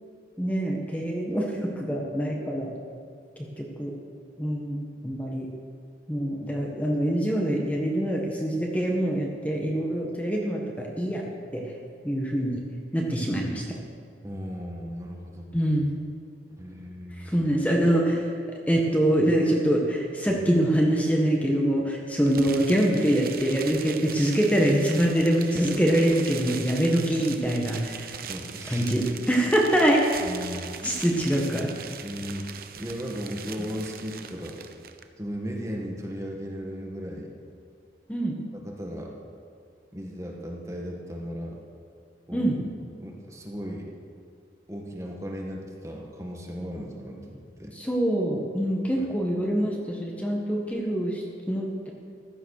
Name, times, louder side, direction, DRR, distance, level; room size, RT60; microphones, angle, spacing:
voice 1, 0.4-2.7 3.4-3.9 4.4-5.5 6.1-11.2 11.5-11.6 12.0-12.6 12.9-13.6 15.5-16.0 17.2-18.3 18.7-28.1 28.7-30.0 30.8-31.7 38.1-38.4 42.3-42.6 47.7-51.9, right 1 dB, 10° left, -1 dB, 1.6 m, -24 dB
voice 2, 14.2-15.5 16.6-17.3 20.3-20.5 28.3-28.9 30.2-30.8 32.0-32.5 32.8-34.6 35.2-37.3 38.5-39.1 39.9-41.6 42.3-42.5 43.0-43.9 44.7-47.8 49.0-49.1, equal, 15° right, -1 dB, 1.7 m, -36 dB
sound 1, 22.3-35.0, right 7 dB, 50° right, 0.9 m, -40 dB
15.5 x 12.5 x 6.7 m, 2.3 s
head